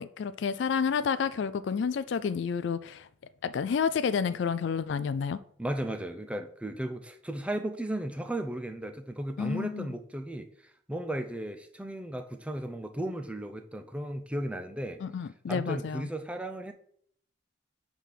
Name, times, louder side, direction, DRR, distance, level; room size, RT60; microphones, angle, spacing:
voice 1, 0.0-3.1 3.4-5.4 9.4-9.9 15.0-16.0, left 6 dB, 60° left, 0.3 m, -30 dB
voice 2, 5.6-15.0 15.5-16.7, right 1 dB, 5° right, 0.4 m, -35 dB
6.3 x 3.5 x 5.8 m
head